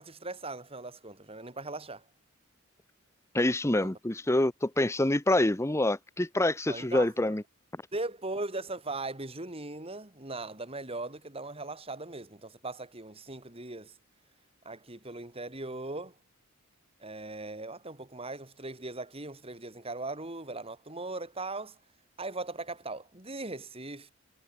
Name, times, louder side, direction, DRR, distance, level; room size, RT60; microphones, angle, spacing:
voice 1, 0.0-2.0 3.7-3.9 6.7-7.3 7.9-13.9 14.7-16.2 17.0-21.8 22.2-24.1, right 2 dB, 25° right, 3.5 m, -39 dB
voice 2, 3.3-7.4, left 1 dB, 15° left, 0.8 m, -26 dB
head